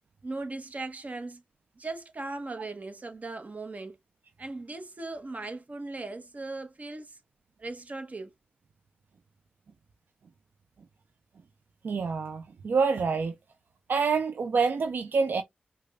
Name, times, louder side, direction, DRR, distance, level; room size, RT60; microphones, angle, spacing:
voice 1, 0.2-1.4 1.8-4.0 4.4-7.2 7.6-8.3, right 3 dB, 50° right, 0.9 m, -38 dB
voice 2, 11.8-13.3 13.9-15.4, right 5 dB, 75° right, 0.4 m, -27 dB
4.9 x 2.2 x 2.4 m
cardioid pair, 50°, 3 cm